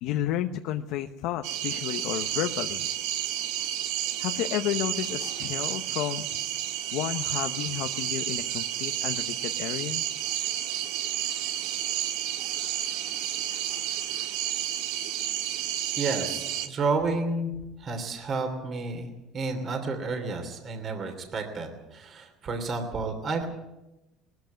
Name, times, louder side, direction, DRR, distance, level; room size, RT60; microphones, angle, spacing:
voice 1, 0.0-2.9 4.2-6.3 6.9-10.0, left 12 dB, 70° left, 7 dB, 0.9 m, -31 dB
sound 1, 1.4-16.7, right 11 dB, 85° right, 1.7 m, -31 dB
voice 2, 16.0-17.5 17.8-23.5, right 3 dB, 35° right, 6 dB, 2.9 m, -31 dB
20.0 x 14.0 x 9.3 m, 0.99 s
cardioid pair, 150°, 0 cm